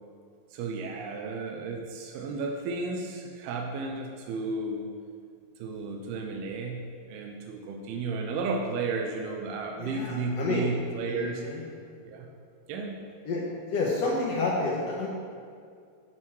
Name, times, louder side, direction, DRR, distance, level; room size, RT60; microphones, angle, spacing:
voice 1, 0.5-4.9 5.6-11.5 12.1-12.3 12.7-13.0, right 3 dB, 90° right, 2 dB, 2.6 m, -33 dB
voice 2, 9.8-10.6 11.1-11.6 13.2-13.4 13.7-15.1, left 3 dB, 70° left, -4 dB, 1.5 m, -29 dB
9.5 x 4.5 x 6.0 m, 2.3 s
omnidirectional pair, 4.3 m